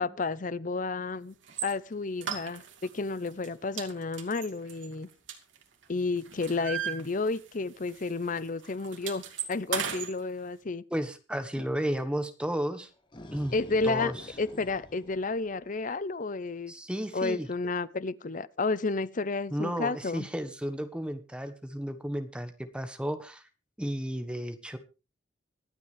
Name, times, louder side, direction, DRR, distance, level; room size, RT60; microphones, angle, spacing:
voice 1, 0.0-1.3 1.6-5.1 5.9-10.8 13.5-14.1 14.4-16.7 17.1-20.3, left 3 dB, 45° left, 0.6 m, -31 dB
sound 1, 1.5-1.7 2.2-2.9 3.3-3.5 3.8-5.8 6.2-7.6 7.9-8.1 8.4-10.1, right 8 dB, 80° right, 2.5 m, -36 dB
voice 2, 10.9-12.9 13.3-13.5 13.8-14.1 16.7-17.5 19.5-23.4 23.8-24.8, equal, 5° right, 1.2 m, -33 dB
sound 2, 12.8-16.0, left 1 dB, 25° left, 2.0 m, -48 dB
24.5 x 8.3 x 3.3 m
head